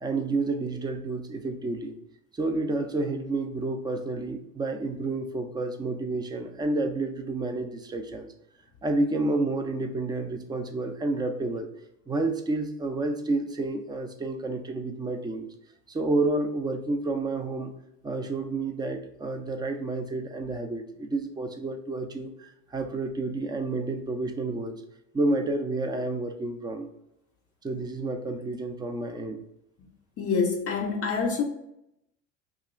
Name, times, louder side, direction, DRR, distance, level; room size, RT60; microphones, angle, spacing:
voice 1, 0.0-2.0 2.3-8.3 8.8-11.7 12.1-15.5 15.9-17.7 18.0-24.8 25.1-26.9 27.6-29.4, right 2 dB, 10° right, 0.4 m, -30 dB
voice 2, 30.2-31.4, left 5 dB, 40° left, 0.6 m, -26 dB
2.9 x 2.5 x 4.0 m
hypercardioid pair, 80°, 37 cm